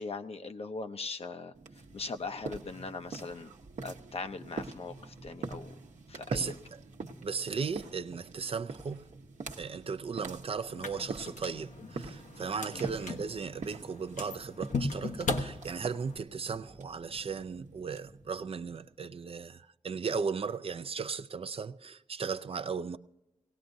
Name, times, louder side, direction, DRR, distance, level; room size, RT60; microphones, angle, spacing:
voice 1, 0.0-1.5 1.9-3.5 3.8-5.7 6.1-6.6 12.7-12.9, left 3 dB, 55° left, 0.6 m, -40 dB
sound 1, 1.5-19.1, right 3 dB, 75° right, 0.9 m, -45 dB
voice 2, 7.2-9.1 9.6-23.0, right 5 dB, 50° right, 0.4 m, -36 dB
sound 2, 10.7-16.2, left 3 dB, 85° left, 1.0 m, -38 dB
19.0 x 17.0 x 2.6 m
wide cardioid pair, 120°, 13 cm